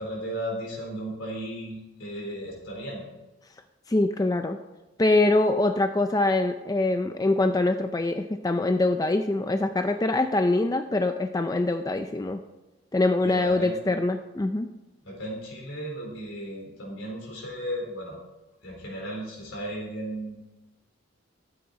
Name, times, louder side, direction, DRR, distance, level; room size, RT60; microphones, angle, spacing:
voice 1, 0.0-3.0 13.2-13.7 15.0-18.2 18.6-20.4, equal, 75° left, -1 dB, 3.7 m, -35 dB
voice 2, 3.9-4.6 5.0-12.4 12.9-14.7, left 2 dB, 15° left, 7 dB, 0.3 m, -24 dB
13.0 x 8.6 x 4.1 m, 1.1 s
head